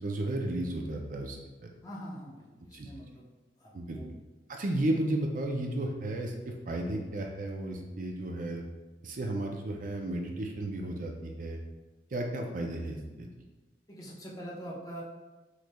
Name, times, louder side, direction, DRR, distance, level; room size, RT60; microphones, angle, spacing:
voice 1, 0.0-1.7 2.7-2.9 3.7-4.0 4.5-8.6 9.0-11.6 12.1-13.3, right 1 dB, 50° right, 2 dB, 0.5 m, -33 dB
voice 2, 1.8-3.3 3.6-4.1 13.9-15.0, equal, 20° left, -5 dB, 0.9 m, -44 dB
6.3 x 3.1 x 2.2 m, 1.2 s
head